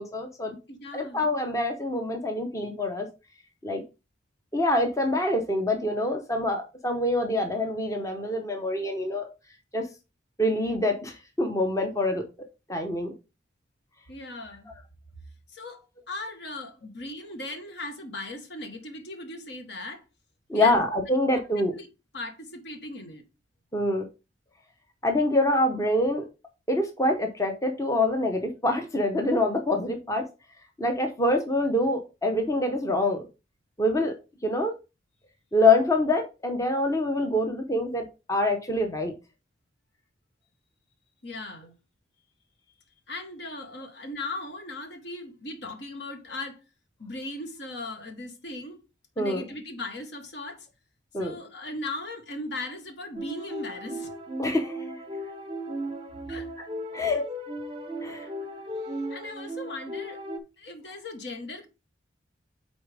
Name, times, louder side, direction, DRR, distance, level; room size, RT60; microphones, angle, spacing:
voice 1, 0.0-0.6 0.9-3.1 3.6-3.8 4.5-9.3 9.7-9.8 10.4-12.2 12.7-13.1 20.5-21.7 23.7-24.0 25.0-26.2 26.7-30.2 30.8-33.2 33.8-34.1 34.4-34.7 35.5-39.1 49.2-49.4 51.1-51.3 54.4-54.8 56.9-57.2 58.0-58.3, left 1 dB, 15° left, 0.8 m, -25 dB
voice 2, 0.7-1.3 14.1-14.7 15.5-20.0 20.5-20.8 21.7-21.9 22.1-23.2 41.2-41.7 43.1-46.6 47.0-48.8 49.2-50.7 51.2-54.1 56.3-56.5 58.1-58.3 58.8-60.2 60.6-61.7, left 2 dB, 65° left, 1.2 m, -38 dB
sound 1, 53.1-60.4, equal, 25° right, 0.7 m, -36 dB
8.5 x 4.1 x 3.4 m
head